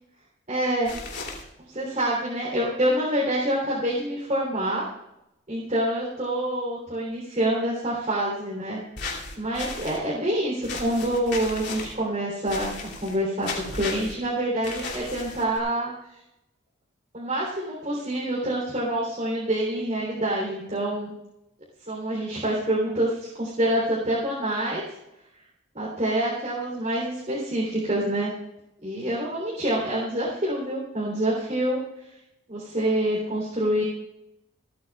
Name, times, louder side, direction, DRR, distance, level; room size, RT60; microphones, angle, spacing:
voice 1, 0.5-0.9 1.7-4.8 5.5-8.8 9.4-15.9 17.1-21.1 21.9-24.8 25.7-28.3 28.8-31.8 32.5-33.8, right 1 dB, 35° right, -6 dB, 3.5 m, -26 dB
sound 1, 0.8-1.4 9.0-10.0 10.6-11.9 12.5-13.2 13.4-14.1 14.6-15.6, left 3 dB, 55° left, 3.0 m, -35 dB
27.5 x 9.4 x 2.4 m, 0.87 s
head